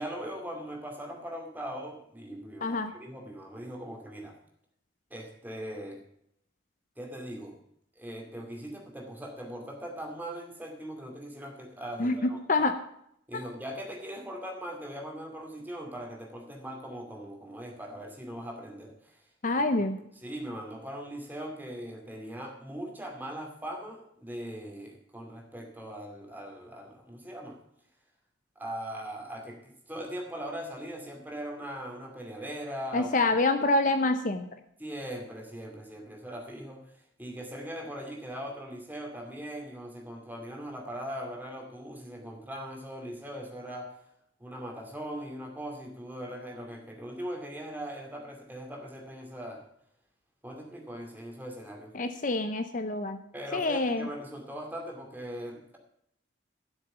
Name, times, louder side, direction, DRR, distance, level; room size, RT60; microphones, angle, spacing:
voice 1, 0.0-4.4 5.1-6.0 7.0-7.6 8.0-12.7 13.3-19.3 20.1-27.6 28.6-33.3 34.8-44.0 44.4-49.6 50.4-51.9 53.3-55.8, equal, 10° right, 1 dB, 2.4 m, -40 dB
voice 2, 2.6-2.9 12.0-12.1 12.5-12.7 19.4-20.0 32.9-34.5 51.9-53.2 53.5-54.1, left 2 dB, 40° left, 9 dB, 0.7 m, -26 dB
12.5 x 6.7 x 6.8 m, 0.73 s
head